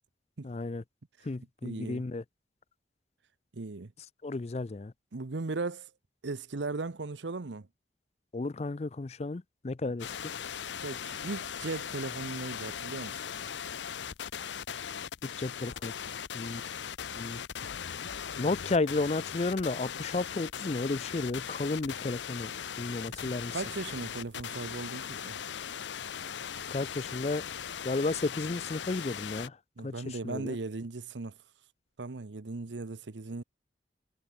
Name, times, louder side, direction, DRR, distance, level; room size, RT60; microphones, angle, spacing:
voice 1, 0.4-0.8 1.3-2.2 4.2-4.9 8.3-10.3 15.4-15.9 16.3-16.6 17.2-17.4 18.4-22.5 22.8-23.5 26.7-27.4 27.8-29.5 29.8-30.6, left 3 dB, 35° left, 0.5 m, -33 dB
voice 2, 1.6-2.0 3.5-3.9 5.1-5.9 6.2-7.7 9.8-9.9 10.8-13.2 23.1-23.2 23.5-25.4 29.8-31.4 32.0-33.4, right 3 dB, 90° right, 0.8 m, -37 dB
sound 1, 10.0-29.5, left 8 dB, 85° left, 0.7 m, -39 dB
head